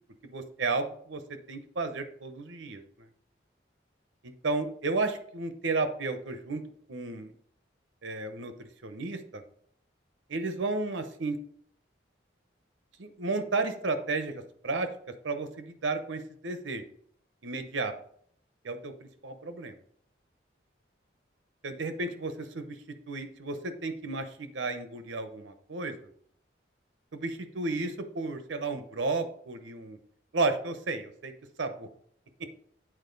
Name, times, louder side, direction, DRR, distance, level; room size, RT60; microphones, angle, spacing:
voice 1, 0.3-3.1 4.2-6.6 6.9-7.3 8.0-8.5 8.8-9.4 10.3-11.4 13.0-14.9 15.2-16.8 17.4-17.9 18.6-19.7 21.6-22.8 23.1-25.9 27.1-30.0 30.3-31.3 31.6-31.9, right 3 dB, 85° right, 9 dB, 0.9 m, -33 dB
8.9 x 4.6 x 4.0 m, 0.63 s
head